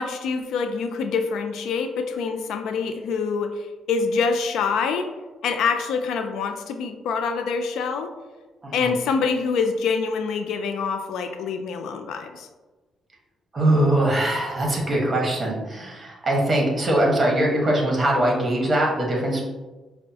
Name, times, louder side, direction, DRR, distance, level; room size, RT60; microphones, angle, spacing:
voice 1, 0.0-5.1 5.4-8.1 8.7-12.5, left 5 dB, 80° left, 7 dB, 0.3 m, -25 dB
voice 2, 13.5-19.4, right 1 dB, 30° right, -2 dB, 1.1 m, -22 dB
5.2 x 2.1 x 2.7 m, 1.2 s
cardioid pair, 90°, 0 cm